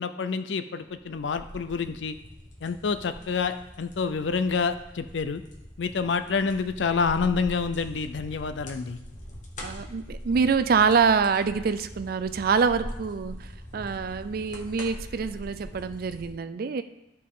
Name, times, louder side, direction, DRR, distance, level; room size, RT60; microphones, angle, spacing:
voice 1, 0.0-2.2 2.6-5.4 5.8-9.0, left 5 dB, 85° left, 10 dB, 0.5 m, -28 dB
sound 1, 0.8-16.3, equal, 45° left, 1.3 m, -42 dB
voice 2, 9.6-16.8, right 5 dB, 55° right, 11 dB, 0.4 m, -25 dB
12.5 x 4.4 x 3.7 m, 0.93 s
head